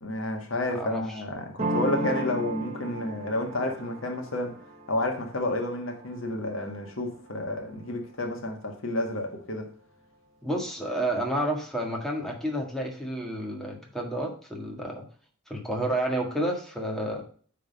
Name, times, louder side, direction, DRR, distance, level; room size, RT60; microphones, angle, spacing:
voice 1, 0.0-4.6 4.9-9.7, left 1 dB, 80° left, 1.7 m, -30 dB
sound 1, 1.6-7.1, right 2 dB, 35° right, 0.8 m, -35 dB
voice 2, 10.4-15.0 15.5-17.2, right 1 dB, ahead, 1.7 m, -30 dB
8.6 x 3.9 x 5.2 m
head